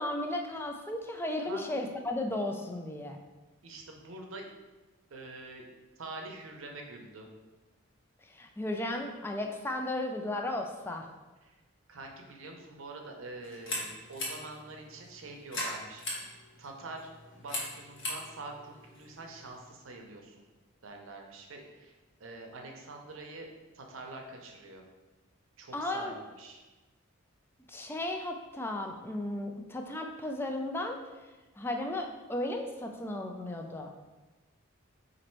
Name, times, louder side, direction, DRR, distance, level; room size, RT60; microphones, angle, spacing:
voice 1, 0.0-3.2 8.3-11.1 25.7-26.1 27.7-31.0 31.6-33.9, left 1 dB, 10° left, 3 dB, 0.3 m, -35 dB
voice 2, 3.6-4.4 5.1-5.7 6.0-7.3 11.4-11.5 11.9-16.0 16.6-17.1 17.4-20.5 20.8-23.5 23.7-24.8 25.6-26.7, right 2 dB, 75° right, 2 dB, 0.6 m, -45 dB
sound 1, 13.4-19.7, left 1 dB, 65° left, 1.1 m, -40 dB
4.2 x 2.6 x 4.4 m, 1.2 s
head